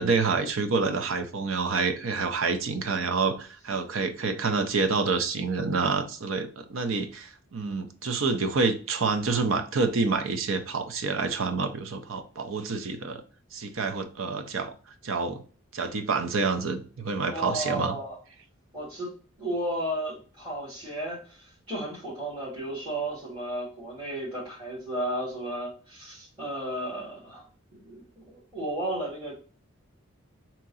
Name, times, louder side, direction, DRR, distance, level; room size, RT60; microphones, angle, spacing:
voice 1, 0.0-13.2 13.5-14.7 15.0-15.4 15.7-17.9, right 4 dB, 70° right, 0.6 m, -28 dB
voice 2, 17.3-18.2 18.7-29.3, right 1 dB, 25° right, 2.3 m, -34 dB
3.7 x 2.9 x 4.0 m
head